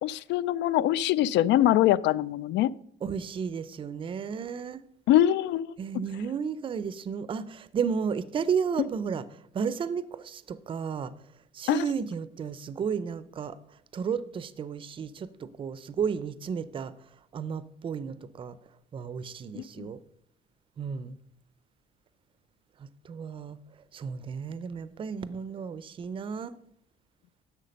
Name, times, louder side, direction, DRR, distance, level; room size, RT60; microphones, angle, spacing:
voice 1, 0.0-2.7 5.1-5.7 11.7-11.9 19.6-19.9, left 13 dB, 75° left, 0.4 m, -23 dB
voice 2, 3.0-4.8 5.8-9.2 9.5-11.1 11.5-13.6 13.9-16.9 17.3-18.6 18.9-20.0 20.8-21.2 23.0-23.6 23.9-26.5, right 6 dB, 30° right, 0.5 m, -33 dB
11.0 x 7.3 x 5.2 m
cardioid pair, 160°, 19 cm